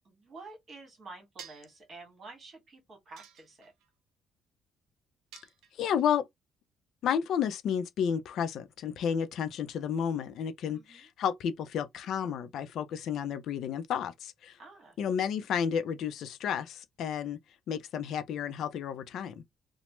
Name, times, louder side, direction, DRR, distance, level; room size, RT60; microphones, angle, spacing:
voice 1, 0.0-3.7 10.7-11.1 14.6-15.0, right 3 dB, 35° right, 1.5 m, -50 dB
sound 1, 1.4-1.8 3.2-3.9 5.3-6.1, right 9 dB, 90° right, 0.6 m, -51 dB
voice 2, 5.8-6.2 7.0-14.5 15.0-17.4 17.7-19.4, left 8 dB, 65° left, 0.4 m, -31 dB
3.1 x 2.0 x 3.0 m
cardioid pair, 145°, 0 cm